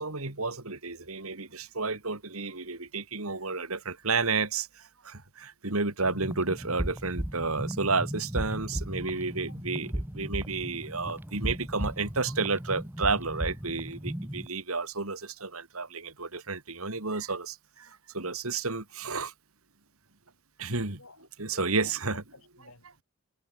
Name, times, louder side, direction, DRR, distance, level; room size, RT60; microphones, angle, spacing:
voice 1, 0.0-4.7 5.0-17.9 18.1-19.3 20.6-21.0 21.4-22.2, right 4 dB, 75° right, 3.1 m, -31 dB
sound 1, 6.0-14.5, equal, 10° right, 1.2 m, -36 dB
voice 2, 21.0-22.9, left 3 dB, 70° left, 7.8 m, -52 dB
head